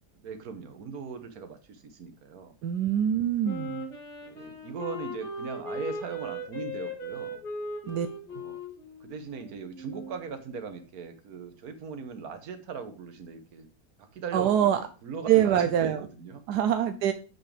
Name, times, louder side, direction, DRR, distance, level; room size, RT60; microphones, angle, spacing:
voice 1, 0.2-2.5 4.2-7.4 8.3-8.6 9.0-13.7 14.0-14.7 15.0-16.4, right 5 dB, 70° right, 8 dB, 1.6 m, -39 dB
voice 2, 2.6-3.8 7.8-8.1 14.3-14.8 15.3-16.1 16.5-17.1, right 10 dB, 85° right, 8 dB, 1.2 m, -24 dB
Wind instrument woodwind instrument, 3.4-10.2, equal, 75° left, 3.2 m, -38 dB
7.5 x 6.2 x 3.3 m, 0.37 s
omnidirectional pair, 1.7 m